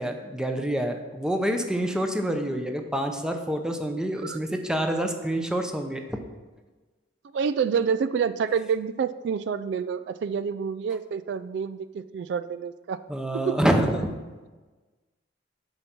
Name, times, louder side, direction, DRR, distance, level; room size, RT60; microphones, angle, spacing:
voice 1, 0.0-6.2 13.1-14.1, right 1 dB, 5° right, 5 dB, 0.7 m, -27 dB
voice 2, 7.3-13.0 13.5-13.6, right 6 dB, 70° right, 14 dB, 0.3 m, -28 dB
8.1 x 5.3 x 6.0 m, 1.3 s
head